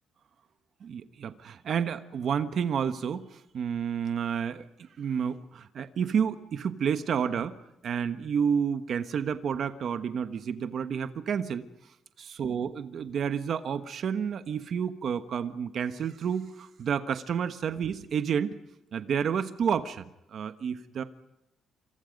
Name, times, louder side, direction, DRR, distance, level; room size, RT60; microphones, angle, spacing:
voice 1, 0.8-7.6 7.8-11.7 12.2-18.6 18.9-21.0, right 7 dB, 45° right, 11 dB, 1.2 m, -30 dB
27.0 x 26.5 x 5.3 m, 0.90 s
cardioid pair, 170°, 0 cm